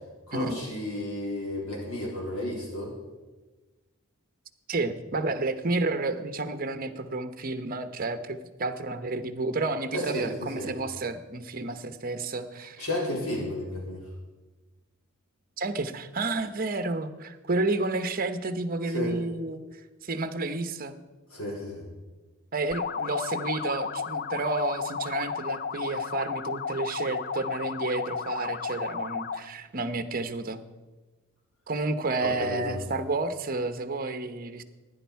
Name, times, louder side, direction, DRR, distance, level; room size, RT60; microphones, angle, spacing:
voice 1, 0.3-2.9 9.9-10.7 12.8-14.0 18.9-19.2 21.3-21.8 32.2-32.8, left 1 dB, 80° left, -3 dB, 3.9 m, -32 dB
voice 2, 4.7-12.9 15.6-19.6 20.0-21.0 22.5-30.6 31.7-34.6, right 3 dB, 40° right, 9 dB, 0.8 m, -31 dB
sound 1, 22.7-29.5, left 6 dB, 45° left, 0.4 m, -33 dB
15.5 x 10.5 x 4.7 m, 1.2 s
head